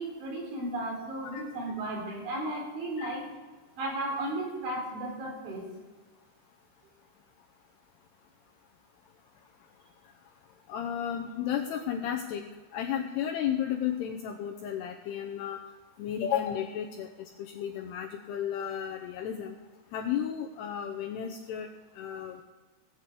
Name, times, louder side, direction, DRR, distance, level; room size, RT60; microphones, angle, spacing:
voice 1, 0.0-3.2 3.8-5.7, right 1 dB, 75° right, -2 dB, 5.9 m, -34 dB
voice 2, 10.7-12.5 12.7-15.6 16.0-19.6 19.9-21.7 22.0-22.4, left 9 dB, 80° left, 1 dB, 2.4 m, -33 dB
17.0 x 5.9 x 8.3 m, 1.3 s
omnidirectional pair, 5.5 m